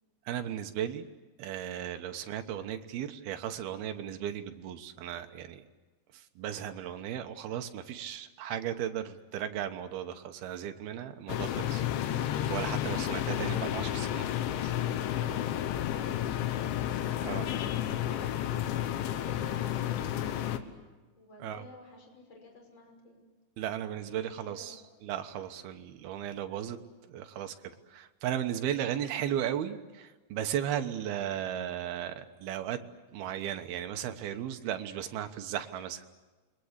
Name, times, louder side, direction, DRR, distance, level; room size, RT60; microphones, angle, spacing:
voice 1, 0.3-1.1 1.4-5.6 6.1-11.8 12.5-14.2 17.2-17.5 21.4-21.6 23.6-32.8 33.1-36.0, right 10 dB, 70° right, 7 dB, 2.8 m, -36 dB
sound 1, 11.3-20.6, left 11 dB, 85° left, 3.6 m, -31 dB
voice 2, 14.8-16.4 17.5-18.6 19.0-20.8 21.2-23.2 24.0-24.8, left 2 dB, 25° left, 2 dB, 6.3 m, -52 dB
29.0 x 23.5 x 8.2 m, 1.2 s
omnidirectional pair, 5.3 m